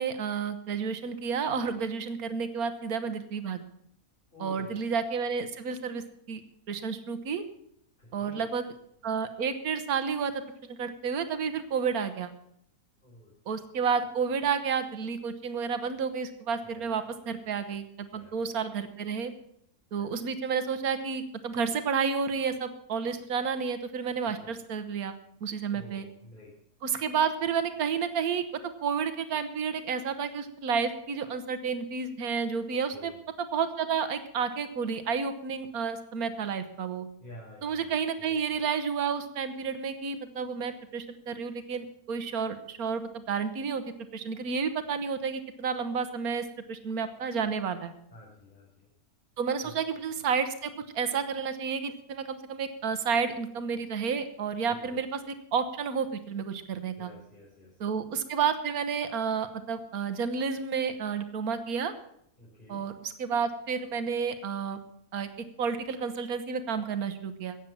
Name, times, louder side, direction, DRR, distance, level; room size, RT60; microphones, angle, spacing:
voice 1, 0.0-3.6 4.4-6.4 6.7-7.4 8.1-8.6 9.0-12.3 13.5-19.3 19.9-25.1 25.4-26.1 26.8-28.4 28.8-33.1 33.5-37.1 37.6-43.8 44.1-47.9 49.4-55.2 55.5-57.1 57.8-61.9 62.7-64.8 65.1-67.6, right 6 dB, 85° right, 10 dB, 1.5 m, -31 dB
voice 2, 4.3-4.8 8.0-8.5 13.0-13.3 16.6-17.2 18.1-18.4 19.9-20.1 24.2-24.5 25.7-26.5 32.9-33.2 37.2-38.4 48.1-48.9 49.6-49.7 54.7-55.0 56.9-57.7 62.4-62.9, left 2 dB, 35° left, -8 dB, 4.4 m, -50 dB
17.5 x 7.5 x 7.0 m, 0.70 s
omnidirectional pair, 1.5 m